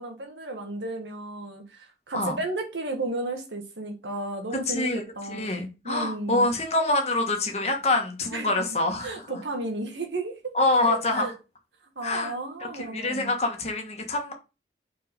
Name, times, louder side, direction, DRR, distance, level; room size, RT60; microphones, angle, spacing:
voice 1, 0.0-4.9 5.1-6.5 8.3-8.6 9.0-10.5 10.9-11.3 11.9-13.3, right 2 dB, 85° right, 1.6 m, -33 dB
voice 2, 4.7-5.0 5.3-9.4 10.5-11.3 12.0-12.3 12.6-14.3, left 2 dB, 35° left, 1.5 m, -26 dB
5.1 x 4.4 x 5.2 m
head